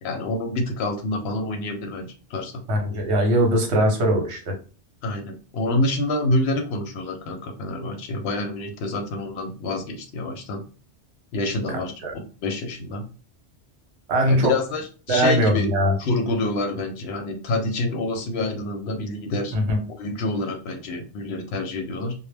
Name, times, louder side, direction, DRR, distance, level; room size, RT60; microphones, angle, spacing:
voice 1, 0.0-2.5 5.0-10.6 11.3-13.1 14.3-15.7 16.0-19.6 19.9-22.1, left 2 dB, 70° left, 5 dB, 0.8 m, -27 dB
voice 2, 2.7-4.5 12.0-12.1 14.1-14.5 15.1-15.9 19.5-19.8, equal, 75° right, 2 dB, 1.0 m, -20 dB
2.1 x 2.0 x 3.2 m, 0.37 s
omnidirectional pair, 1.2 m